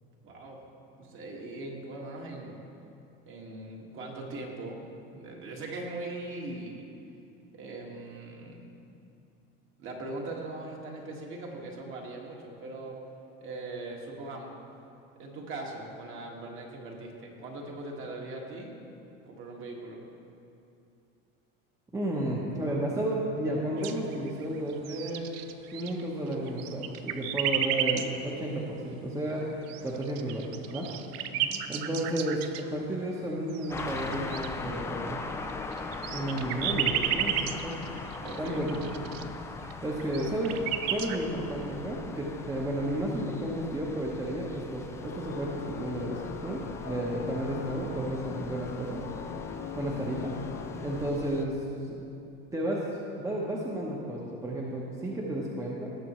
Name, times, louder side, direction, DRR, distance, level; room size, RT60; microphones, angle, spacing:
voice 1, 0.2-0.6 1.0-2.6 3.3-4.8 5.1-6.9 7.5-8.6 9.8-13.0 13.4-14.6 15.2-18.7 19.3-20.0 31.3-31.7 38.2-38.7, right 2 dB, 40° right, -1 dB, 1.8 m, -40 dB
voice 2, 21.9-25.3 25.7-29.5 29.8-30.9 31.7-35.2 36.1-37.8 38.4-38.9 39.6-40.6 40.9-49.0 49.7-50.4 50.8-52.0 52.5-52.8 53.2-55.9, right 1 dB, 10° right, -3 dB, 1.0 m, -32 dB
sound 1, 23.8-24.4 24.7-26.0 26.3-28.1 29.7-32.7 33.5-34.5 35.2-39.2 39.7-39.8 40.0-41.2, right 10 dB, 75° right, 0.7 m, -32 dB
sound 2, 33.7-51.4, left 3 dB, 10° left, 0.3 m, -41 dB
sound 3, 45.0-51.1, left 8 dB, 50° left, 0.7 m, -41 dB
18.0 x 6.9 x 3.1 m, 2.6 s
supercardioid pair, 135°, 30 cm